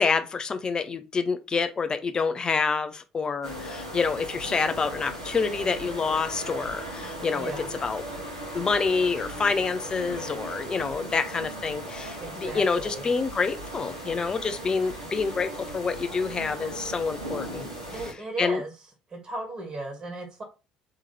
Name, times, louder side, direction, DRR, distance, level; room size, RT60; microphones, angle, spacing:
voice 1, 0.0-7.5 7.8-8.0 8.5-18.0 18.4-18.6, left 5 dB, 30° left, 0.6 m, -27 dB
sound 1, 3.4-18.1, right 1 dB, 85° right, 1.2 m, -38 dB
voice 2, 7.3-7.7 12.2-13.0 17.9-18.7 19.1-20.4, right 2 dB, 30° right, 1.5 m, -35 dB
3.7 x 3.0 x 4.2 m
figure-of-eight pair, 55°, 3 cm